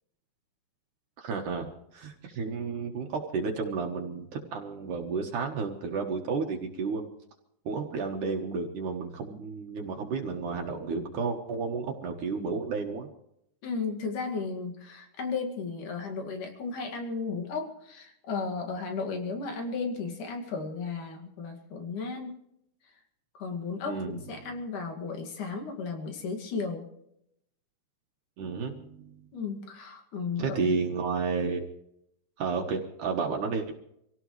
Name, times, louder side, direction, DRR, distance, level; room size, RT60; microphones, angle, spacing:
voice 1, 1.2-7.1 7.7-13.1 23.9-24.6 28.4-29.2 30.4-31.7 32.4-33.7, right 4 dB, 70° right, 1 dB, 2.8 m, -32 dB
voice 2, 13.6-22.4 23.4-26.9 29.3-30.7, left 4 dB, 70° left, 3 dB, 3.6 m, -34 dB
25.5 x 17.0 x 3.2 m, 0.77 s
omnidirectional pair, 3.9 m